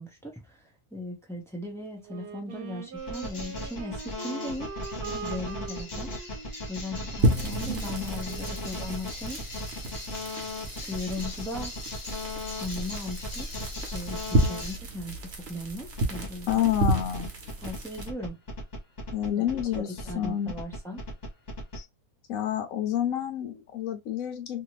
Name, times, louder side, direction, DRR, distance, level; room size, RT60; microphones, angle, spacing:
voice 1, 0.0-6.1 6.7-9.4 10.9-11.9 12.6-13.5 13.9-16.7 17.6-18.4 19.4-19.5 19.8-21.0, left 1 dB, 5° left, 0.4 m, -38 dB
Wind instrument woodwind instrument, 2.0-8.7, right 5 dB, 85° right, 1.3 m, -42 dB
sound 1, 3.0-14.8 16.0-21.8, left 1 dB, 30° left, 1.2 m, -37 dB
sound 2, 7.2-18.1, right 1 dB, 50° right, 1.0 m, -31 dB
voice 2, 16.5-17.3 19.1-20.5 22.3-24.6, left 10 dB, 70° left, 0.9 m, -29 dB
2.7 x 2.6 x 3.0 m
omnidirectional pair, 1.6 m